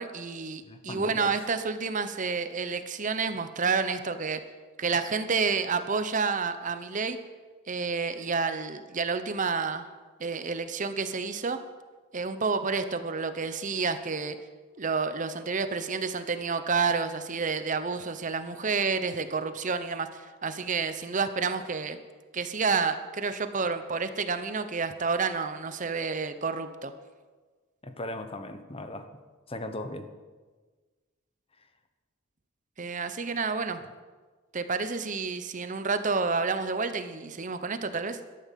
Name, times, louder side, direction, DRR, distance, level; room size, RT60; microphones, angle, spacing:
voice 1, 0.0-4.4 4.8-7.2 7.7-9.9 10.2-11.6 12.1-14.4 14.8-22.0 22.3-26.9 32.8-33.8 34.5-38.2, right 4 dB, 40° right, 10 dB, 0.8 m, -29 dB
voice 2, 0.7-1.3 27.8-29.2 29.5-30.1, left 1 dB, 30° left, 8 dB, 1.0 m, -38 dB
13.0 x 11.0 x 7.5 m, 1.4 s
head